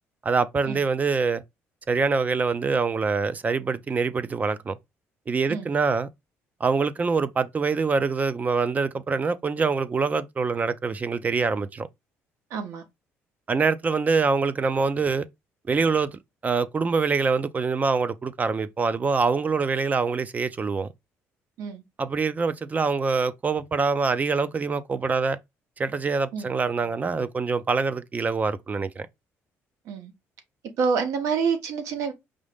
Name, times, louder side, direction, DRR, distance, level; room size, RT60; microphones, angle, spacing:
voice 1, 0.2-1.4 1.9-4.8 5.3-6.1 6.6-11.9 13.5-15.3 15.7-20.9 22.0-25.4 25.8-29.1, right 4 dB, 30° right, 0.5 m, -25 dB
voice 2, 12.5-12.8 21.6-21.8 26.3-26.5 29.9-30.1 30.8-32.1, right 5 dB, 80° right, 1.2 m, -27 dB
5.1 x 2.6 x 3.5 m
cardioid pair, 95°, 5 cm